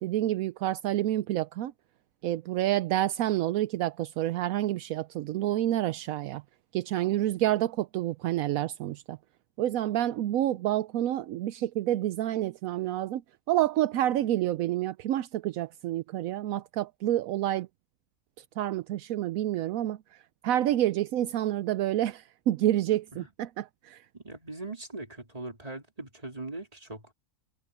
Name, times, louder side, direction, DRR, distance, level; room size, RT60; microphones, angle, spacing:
voice 1, 0.0-1.7 2.2-6.4 6.7-9.2 9.6-13.2 13.5-17.7 18.6-20.0 20.4-24.0, right 13 dB, 80° right, 1.0 m, -28 dB
voice 2, 24.1-27.0, right 2 dB, 25° right, 3.4 m, -40 dB
omnidirectional pair, 1.5 m